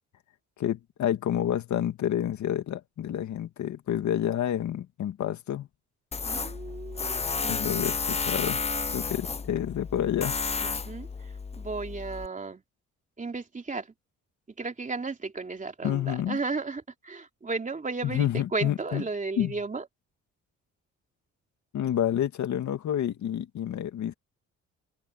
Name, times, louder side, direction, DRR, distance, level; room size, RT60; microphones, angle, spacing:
voice 1, 0.6-5.7 7.5-8.6 8.9-10.4 15.8-16.4 18.0-19.0 19.4-19.5 21.7-24.1, left 10 dB, 70° left, 2.3 m, -29 dB
Tools, 6.1-12.3, left 4 dB, 20° left, 0.7 m, -32 dB
voice 2, 6.3-7.9 10.6-12.6 13.2-13.9 14.6-19.9, right 4 dB, 25° right, 3.1 m, -34 dB
cardioid pair, 90°, 30 cm